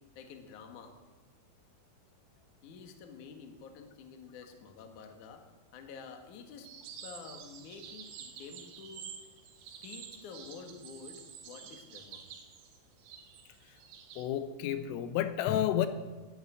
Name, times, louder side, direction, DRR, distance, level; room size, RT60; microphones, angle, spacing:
voice 1, 0.2-1.0 2.6-6.7 7.0-9.1 9.8-12.2, left 5 dB, 60° left, 5 dB, 2.3 m, -49 dB
sound 1, 6.6-14.3, right 7 dB, 80° right, 4.1 m, -49 dB
voice 2, 14.2-15.9, left 11 dB, 90° left, 10 dB, 3.5 m, -30 dB
12.5 x 11.0 x 9.6 m, 1.2 s
omnidirectional pair, 5.7 m